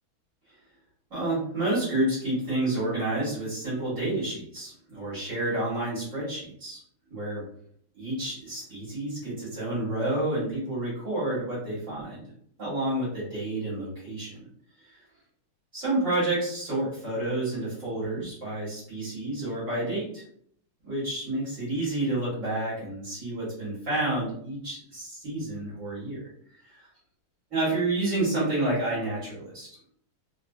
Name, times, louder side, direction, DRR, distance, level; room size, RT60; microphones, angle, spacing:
voice 1, 1.1-6.8 7.1-7.4 7.9-12.3 12.6-14.5 14.8-15.0 15.7-20.2 20.8-26.3 26.7-26.9 27.5-29.7, right 2 dB, 40° right, -9 dB, 1.7 m, -29 dB
3.5 x 2.6 x 2.3 m, 0.63 s
omnidirectional pair, 2.3 m